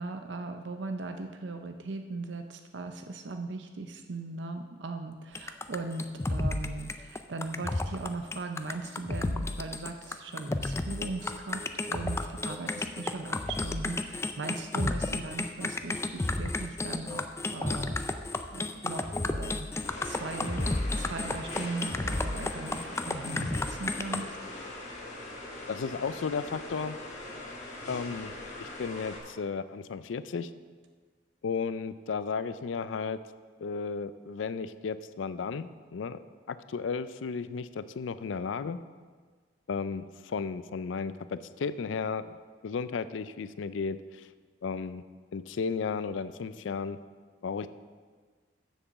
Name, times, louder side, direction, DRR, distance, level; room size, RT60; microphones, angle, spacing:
voice 1, 0.0-18.0 18.5-22.8 23.1-24.4, right 3 dB, 75° right, 6 dB, 0.6 m, -38 dB
sound 1, 5.3-24.2, left 2 dB, 15° left, 0.3 m, -32 dB
sound 2, 19.8-29.2, left 2 dB, 40° left, 1.6 m, -42 dB
voice 2, 25.7-27.0 27.9-30.5 31.4-33.2 33.6-36.2 36.5-38.8 39.7-42.4 42.6-44.3 44.6-45.0 45.3-47.0 47.4-47.7, left 5 dB, 90° left, 14 dB, 0.4 m, -34 dB
7.4 x 7.0 x 6.9 m, 1.5 s
head